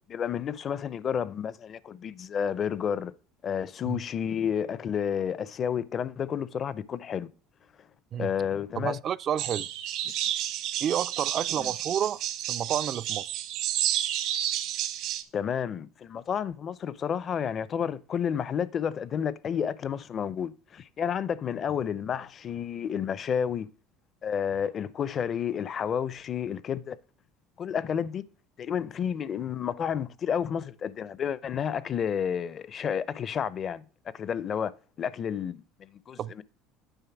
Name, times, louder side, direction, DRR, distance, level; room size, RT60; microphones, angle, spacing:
voice 1, 0.1-3.1 3.4-7.3 8.2-9.0 11.6-11.7 15.3-23.7 24.2-27.0 27.6-28.2 28.6-33.8 34.1-34.7 35.0-36.4, left 8 dB, 40° left, 0.5 m, -31 dB
voice 2, 8.8-9.7 10.8-12.2 12.5-13.4 36.2-36.4, right 9 dB, 45° right, 0.3 m, -30 dB
sound 1, 9.4-15.2, right 12 dB, 65° right, 0.9 m, -31 dB
9.2 x 3.6 x 5.9 m
supercardioid pair, 100°, 0 cm